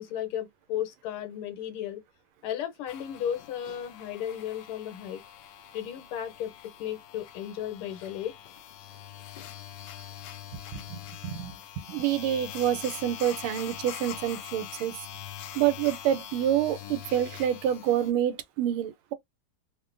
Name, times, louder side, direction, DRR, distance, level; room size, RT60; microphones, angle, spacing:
voice 1, 0.0-2.0 2.4-5.2 5.7-6.5 6.8-8.3, left 10 dB, 90° left, 1.7 m, -34 dB
sound 1, 2.9-18.1, left 10 dB, 75° left, 1.0 m, -43 dB
voice 2, 10.7-15.0 15.5-19.1, right 11 dB, 90° right, 1.5 m, -28 dB
3.7 x 2.2 x 2.4 m
omnidirectional pair, 2.3 m